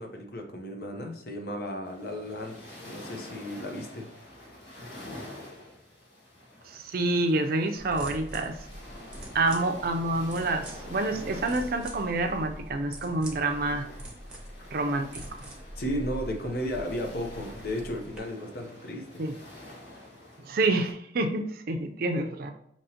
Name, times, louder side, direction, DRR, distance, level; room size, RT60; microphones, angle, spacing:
voice 1, 0.0-2.6 2.8-4.1 15.8-19.2, equal, 60° left, 3 dB, 0.8 m, -34 dB
sound 1, 1.8-20.9, left 1 dB, 75° left, 1.4 m, -47 dB
voice 2, 6.7-8.6 9.3-13.9 14.7-15.2 19.2-19.4 20.4-22.5, right 2 dB, 55° right, 6 dB, 0.5 m, -28 dB
sound 2, 7.8-18.2, equal, 5° right, 0.8 m, -43 dB
5.5 x 2.9 x 2.8 m, 0.71 s
head